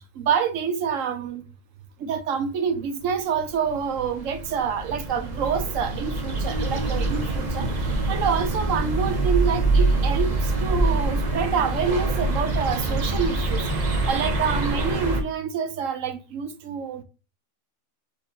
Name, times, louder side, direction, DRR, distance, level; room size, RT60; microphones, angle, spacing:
voice 1, 0.2-1.4 2.0-7.7 8.1-13.6 14.1-17.0, right 7 dB, 70° right, 1.1 m, -27 dB
sound 1, 3.4-15.2, right 2 dB, 40° right, 0.8 m, -25 dB
4.2 x 2.7 x 4.0 m
omnidirectional pair, 1.5 m